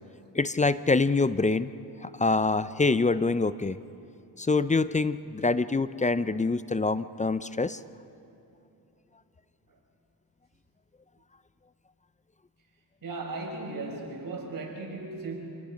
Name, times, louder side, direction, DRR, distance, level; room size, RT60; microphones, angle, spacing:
voice 1, 0.3-1.7 2.0-3.8 4.4-7.8, left 3 dB, 15° left, 15 dB, 0.5 m, -25 dB
voice 2, 13.0-15.4, right 3 dB, 50° right, -1 dB, 5.9 m, -36 dB
27.0 x 19.0 x 5.2 m, 2.8 s
cardioid pair, 65°, 43 cm